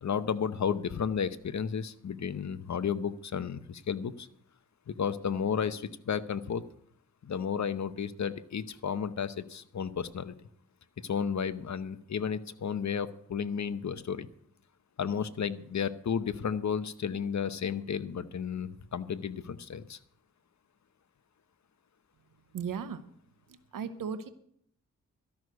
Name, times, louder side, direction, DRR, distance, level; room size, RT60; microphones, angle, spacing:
voice 1, 0.0-4.3 4.9-6.6 7.2-10.3 11.0-14.3 15.0-20.0, left 7 dB, 60° left, 14 dB, 0.9 m, -33 dB
voice 2, 22.5-23.0 23.5-24.3, right 6 dB, 90° right, 11 dB, 0.9 m, -36 dB
13.0 x 6.4 x 9.4 m, 0.68 s
cardioid pair, 70°, 32 cm